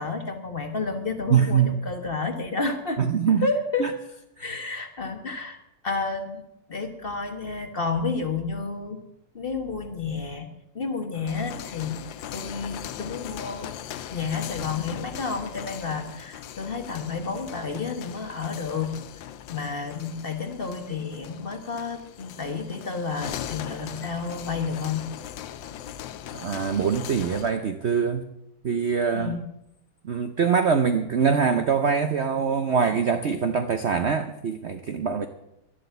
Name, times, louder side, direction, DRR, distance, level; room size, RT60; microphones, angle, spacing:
voice 1, 0.0-3.0 3.4-3.9 4.4-5.6 5.8-6.4 6.7-9.0 9.3-10.5 10.7-12.0 12.3-13.7 14.1-19.0 19.5-25.1 29.1-29.5, left 4 dB, 35° left, 6 dB, 1.3 m, -30 dB
voice 2, 1.3-1.7 3.0-3.5 3.8-3.9 26.3-28.2 28.6-29.4 30.0-35.3, right 6 dB, 55° right, 8 dB, 0.8 m, -23 dB
sound 1, 11.1-27.6, left 11 dB, 90° left, 1.4 m, -39 dB
12.0 x 11.5 x 6.9 m, 0.83 s
omnidirectional pair, 2.0 m